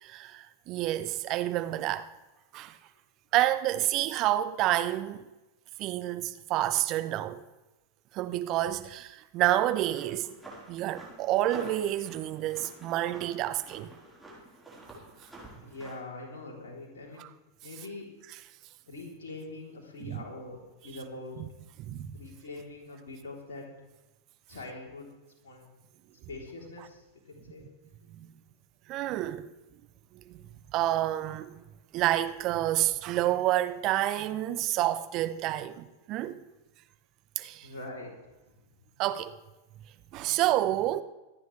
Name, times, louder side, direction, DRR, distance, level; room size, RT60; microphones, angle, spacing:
voice 1, 0.0-2.1 2.5-2.8 3.3-5.3 5.8-7.4 8.1-10.3 10.7-13.9 17.2-17.3 20.1-20.2 21.4-21.5 21.8-22.2 28.1-28.3 28.9-29.5 30.1-31.6 31.9-36.4 37.4-37.7 39.0-39.3 40.1-41.0, right 14 dB, 40° right, 0.8 m, -29 dB
sound 1, 9.7-16.0, right 2 dB, 5° right, 4.5 m, -48 dB
voice 2, 15.6-17.3 17.6-18.1 18.9-21.4 22.1-23.7 24.5-25.1 25.4-25.7 26.3-27.6 37.6-38.1, left 2 dB, 60° left, 3.7 m, -43 dB
25.0 x 9.2 x 3.4 m
figure-of-eight pair, 90°, 0 cm